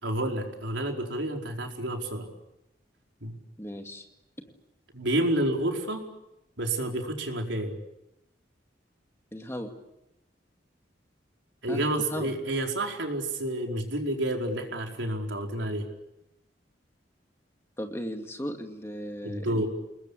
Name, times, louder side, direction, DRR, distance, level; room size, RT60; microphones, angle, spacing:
voice 1, 0.0-2.3 3.2-3.3 4.9-6.1 6.6-7.8 11.6-15.9 19.2-19.7, right 1 dB, 80° right, 2 dB, 4.8 m, -29 dB
voice 2, 3.6-4.0 9.3-9.7 11.7-11.8 12.1-12.3 17.8-19.7, equal, 15° left, 4 dB, 2.2 m, -36 dB
29.0 x 20.5 x 8.5 m, 0.87 s
head